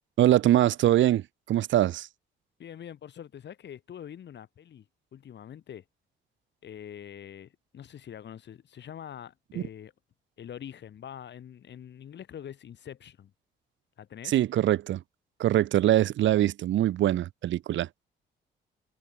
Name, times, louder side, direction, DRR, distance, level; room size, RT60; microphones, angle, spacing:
voice 1, 0.2-1.2 1.5-2.1 14.2-15.0 15.4-17.9, right 13 dB, 70° right, 1.0 m, -23 dB
voice 2, 2.6-4.8 5.1-5.8 6.6-9.9 10.4-13.3 14.0-14.3, left 9 dB, 60° left, 6.2 m, -44 dB
cardioid pair, 90°, 20 cm